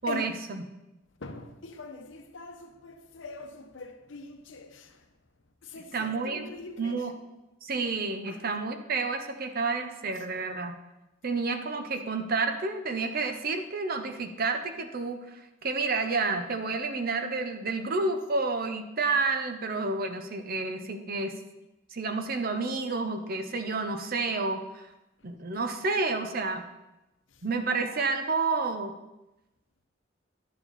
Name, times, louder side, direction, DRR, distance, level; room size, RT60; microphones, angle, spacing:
voice 1, 0.0-0.7 5.9-6.5 6.8-7.1 7.6-10.7 11.2-21.3 21.9-24.9 25.2-26.6 27.4-28.9, right 3 dB, 50° right, 7 dB, 0.8 m, -30 dB
voice 2, 1.2-4.9 5.6-7.0 8.3-8.4, left 3 dB, 80° left, 7 dB, 0.9 m, -42 dB
10.5 x 7.2 x 4.1 m, 0.97 s
head